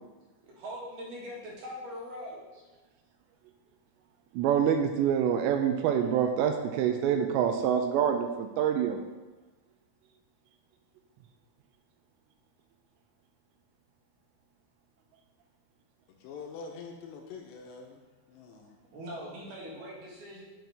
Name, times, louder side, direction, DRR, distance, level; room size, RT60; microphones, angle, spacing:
voice 1, 0.4-2.7 18.9-20.4, equal, 65° right, -4 dB, 3.3 m, -42 dB
voice 2, 4.3-9.0, right 8 dB, 80° right, 5 dB, 2.7 m, -26 dB
voice 3, 16.1-18.0 18.3-18.7, left 5 dB, 80° left, 1 dB, 2.8 m, -45 dB
10.0 x 6.0 x 3.5 m, 1.2 s
omnidirectional pair, 5.3 m